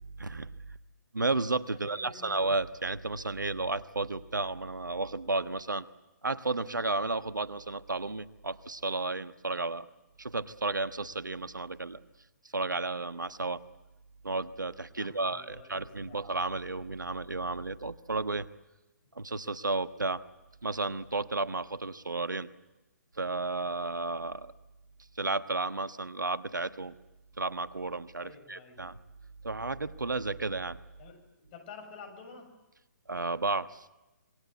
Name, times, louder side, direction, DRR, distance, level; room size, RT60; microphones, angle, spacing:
voice 1, 0.2-0.8 1.1-5.8 6.2-9.9 10.2-12.0 12.5-13.6 14.2-18.5 19.1-20.2 20.6-22.5 23.2-24.5 25.2-26.9 27.4-29.0 29.4-30.8 33.1-33.9, right 3 dB, 90° right, 13 dB, 1.3 m, -33 dB
voice 2, 1.7-2.4 15.0-15.7 16.1-16.2 28.2-28.9 31.0-32.5, left 4 dB, 35° left, 6 dB, 7.0 m, -49 dB
26.5 x 22.5 x 8.2 m, 1.0 s
figure-of-eight pair, 135°, 10 cm